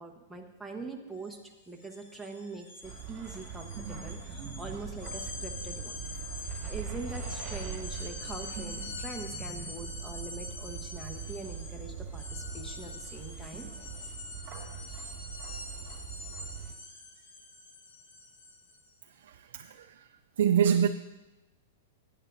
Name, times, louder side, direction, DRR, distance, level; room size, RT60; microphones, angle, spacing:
voice 1, 0.0-1.4 1.7-6.0 6.4-13.7, right 3 dB, ahead, -2 dB, 1.0 m, -43 dB
sound 1, 1.2-1.3 1.6-18.9, left 3 dB, 60° left, 1.7 m, -45 dB
sound 2, 2.8-16.7, right 7 dB, 30° right, 1.7 m, -41 dB
voice 2, 19.2-20.1 20.4-20.9, right 8 dB, 75° right, 6 dB, 0.4 m, -26 dB
16.0 x 9.2 x 2.6 m, 1.0 s
supercardioid pair, 155°, 0 cm